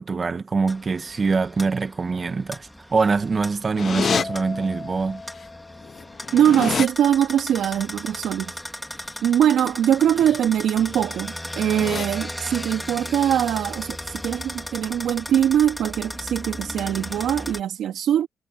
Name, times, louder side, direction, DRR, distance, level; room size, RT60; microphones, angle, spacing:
voice 1, 0.0-5.2, right 4 dB, 35° right, 1.9 m, -24 dB
sound 1, 0.7-17.6, left 1 dB, 5° left, 3.7 m, -36 dB
sound 2, 3.8-4.2 5.4-5.5 5.8-6.9 10.0-10.4 10.8-11.1 11.5-12.0, left 6 dB, 50° left, 0.6 m, -28 dB
Mallet percussion, 4.1-6.6, left 3 dB, 30° left, 2.9 m, -39 dB
voice 2, 6.3-8.6 8.9-18.3, right 10 dB, 75° right, 2.6 m, -22 dB
cardioid pair, 90°, 0 cm